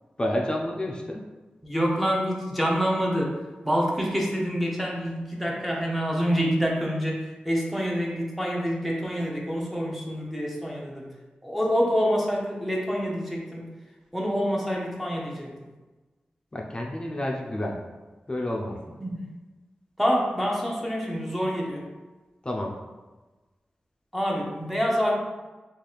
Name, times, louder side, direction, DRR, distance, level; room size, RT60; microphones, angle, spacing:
voice 1, 0.2-1.2 16.5-17.8 18.3-18.8 22.4-22.7, left 1 dB, 25° left, -1 dB, 0.5 m, -29 dB
voice 2, 1.6-11.1 11.4-13.7 14.1-15.7 19.0-19.3 20.0-21.9 24.1-25.2, equal, ahead, -2 dB, 0.8 m, -27 dB
3.2 x 2.4 x 4.1 m, 1.2 s
wide cardioid pair, 70°, 3 cm